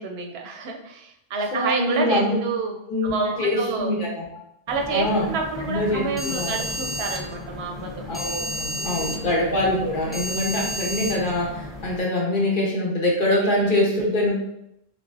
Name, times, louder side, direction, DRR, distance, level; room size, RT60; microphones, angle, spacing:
voice 1, 0.0-3.9 4.7-8.0 8.8-9.3 13.4-13.7, right 4 dB, 85° right, 3 dB, 0.8 m, -29 dB
voice 2, 1.5-2.3 2.9-4.4 4.9-5.3 5.7-6.6 8.1-14.3, left 1 dB, 55° left, -3 dB, 1.0 m, -24 dB
sound 1, 4.7-12.0, equal, ahead, 0.7 m, -32 dB
5.7 x 2.0 x 2.6 m, 0.79 s
omnidirectional pair, 1.0 m